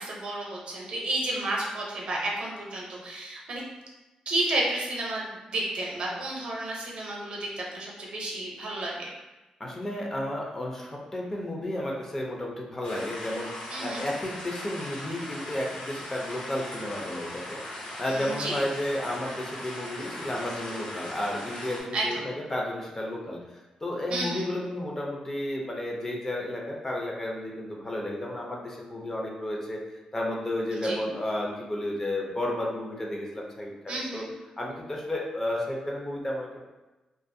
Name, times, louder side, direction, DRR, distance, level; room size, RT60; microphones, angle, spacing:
voice 1, 0.0-3.6 4.3-9.1 13.7-14.1 18.1-18.6 21.9-22.3 24.1-24.5 30.7-31.0 33.9-34.3, right 2 dB, 55° right, -3 dB, 0.6 m, -31 dB
voice 2, 9.6-29.8 30.1-34.2 34.6-36.6, left 1 dB, 20° left, -2 dB, 0.4 m, -32 dB
sound 1, 12.8-21.8, left 1 dB, 70° left, 0.7 m, -39 dB
2.4 x 2.4 x 2.6 m, 1.1 s
wide cardioid pair, 140°, 2 cm